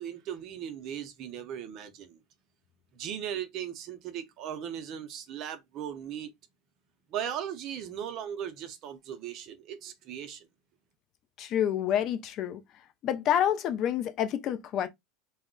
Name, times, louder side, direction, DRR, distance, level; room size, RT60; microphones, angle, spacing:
voice 1, 0.0-2.2 2.9-6.3 7.1-10.5, right 9 dB, 40° right, 0.5 m, -38 dB
voice 2, 11.4-12.6 13.0-14.9, left 10 dB, 40° left, 0.4 m, -28 dB
2.3 x 2.0 x 3.6 m
supercardioid pair, 150°, 0 cm